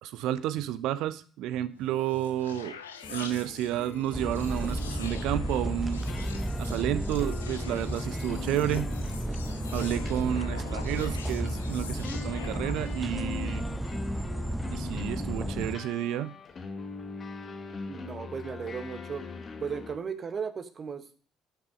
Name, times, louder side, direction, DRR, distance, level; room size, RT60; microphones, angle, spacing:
voice 1, 0.0-2.8 3.1-6.0 6.6-8.9 9.7-13.6 14.7-16.3, right 12 dB, 65° right, 16 dB, 0.6 m, -31 dB
sound 1, 1.7-13.2, left 7 dB, 85° left, 0.6 m, -46 dB
sound 2, 3.0-20.0, left 4 dB, 40° left, 1.4 m, -42 dB
sound 3, 4.1-15.8, right 1 dB, 5° right, 0.8 m, -33 dB
voice 2, 17.9-19.2 19.6-21.2, right 6 dB, 40° right, 10 dB, 1.1 m, -36 dB
10.5 x 6.1 x 5.0 m, 0.43 s
figure-of-eight pair, 55°, 0 cm